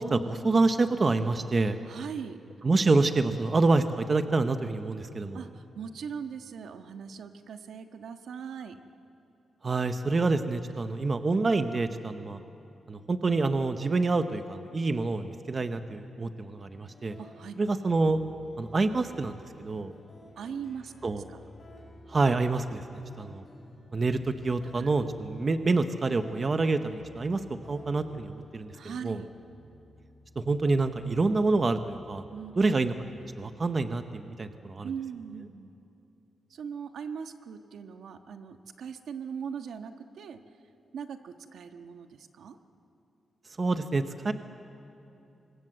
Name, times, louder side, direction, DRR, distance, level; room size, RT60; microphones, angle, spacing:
voice 1, 0.0-1.8 2.6-5.4 9.6-12.4 12.9-17.1 17.6-18.2 18.6-19.9 21.0-21.2 22.1-23.4 23.9-27.4 27.7-28.7 29.0-29.2 30.4-32.2 32.6-34.9 43.6-44.3, right 3 dB, 30° right, 8 dB, 0.9 m, -27 dB
voice 2, 1.9-2.4 3.2-3.4 5.3-8.8 17.2-17.5 20.4-20.9 21.3-21.4 24.7-25.1 28.7-29.4 32.3-32.5 34.8-35.7 36.5-40.4 40.9-42.6, right 7 dB, 75° right, 6 dB, 1.4 m, -40 dB
sound 1, 16.6-34.5, left 1 dB, 30° left, 6.2 m, -54 dB
28.0 x 25.0 x 7.7 m, 2.8 s
wide cardioid pair, 175°, 0 cm